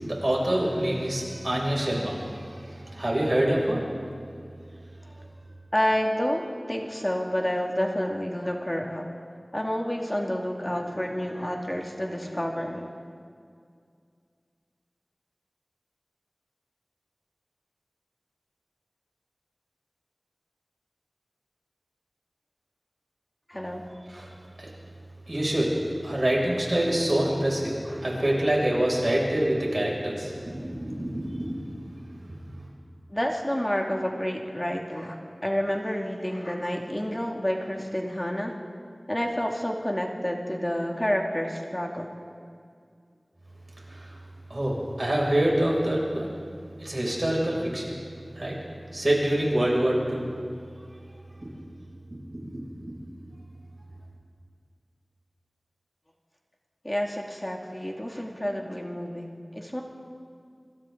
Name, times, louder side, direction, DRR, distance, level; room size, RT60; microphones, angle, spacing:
voice 1, 0.0-3.8 24.1-24.3 24.6-24.7 25.3-25.8 26.0-31.6 32.1-32.7 43.9-44.2 44.5-46.3 46.8-48.0 48.3-48.6 48.9-50.3 51.4-51.5 52.3-52.6, right 1 dB, 55° right, -3 dB, 6.4 m, -26 dB
voice 2, 5.7-9.1 9.5-12.9 23.5-24.0 33.1-38.5 39.1-42.1 56.8-59.8, equal, 20° left, 1 dB, 2.3 m, -29 dB
26.5 x 26.0 x 3.9 m, 2.2 s
wide cardioid pair, 40°, 0 cm